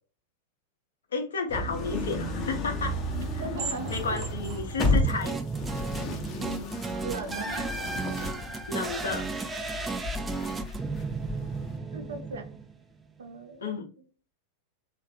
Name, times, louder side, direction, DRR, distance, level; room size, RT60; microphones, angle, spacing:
voice 1, 1.1-3.0 3.3-3.4 3.9-5.4 8.7-9.3 13.6-13.9, left 4 dB, 65° left, 5 dB, 0.7 m, -32 dB
sound 1, 1.5-11.8, left 1 dB, 30° left, 0.7 m, -33 dB
sound 2, 3.3-6.6, right 4 dB, 35° right, 0.8 m, -43 dB
voice 2, 3.4-4.5 7.0-7.7 11.9-12.5 13.2-13.8, right 3 dB, 65° right, 6 dB, 0.6 m, -38 dB
sound 3, 4.8-13.0, right 4 dB, 15° right, 0.4 m, -34 dB
3.1 x 2.4 x 2.7 m, 0.38 s
figure-of-eight pair, 90°, 0 cm